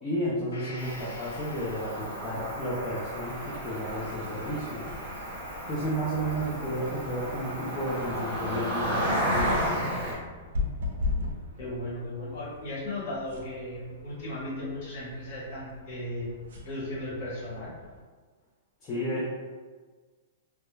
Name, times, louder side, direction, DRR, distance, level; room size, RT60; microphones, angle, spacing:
voice 1, 0.0-4.9 5.7-9.6 18.8-19.3, equal, 15° left, -8 dB, 0.3 m, -32 dB
Gong, 0.5-8.2 8.5-8.6, left 1 dB, 75° left, 0.5 m, -50 dB
Cricket, 0.8-10.1, equal, 20° right, 0.9 m, -33 dB
sound 1, 4.4-18.0, left 3 dB, 65° right, 0.5 m, -39 dB
voice 2, 11.6-16.3 16.6-17.7, left 1 dB, 40° left, -7 dB, 0.9 m, -36 dB
2.2 x 2.0 x 3.1 m, 1.4 s
hypercardioid pair, 180°, 0 cm